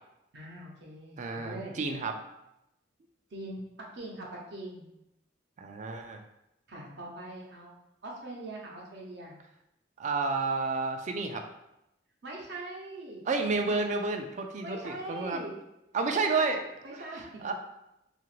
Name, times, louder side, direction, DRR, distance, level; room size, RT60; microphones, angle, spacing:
voice 1, 0.3-1.7 3.3-4.9 6.7-9.4 12.2-13.2 14.6-15.5 16.1-17.5, right 1 dB, 60° right, -2 dB, 0.7 m, -42 dB
voice 2, 1.2-2.1 5.6-6.2 10.0-11.4 13.2-15.4 15.9-16.6 16.9-17.5, right 4 dB, 40° right, 5 dB, 0.3 m, -30 dB
2.8 x 2.5 x 3.0 m, 0.87 s
head